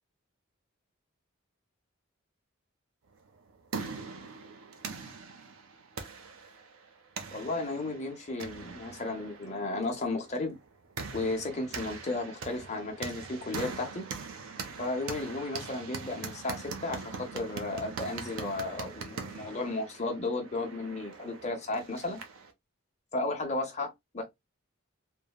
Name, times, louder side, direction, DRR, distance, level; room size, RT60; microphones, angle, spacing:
sound 1, 3.3-22.5, right 4 dB, 85° right, 0.6 m, -42 dB
voice 1, 7.3-10.6 11.1-14.1 14.8-22.2 23.1-24.2, left 2 dB, 30° left, 0.7 m, -34 dB
3.3 x 2.1 x 2.2 m
head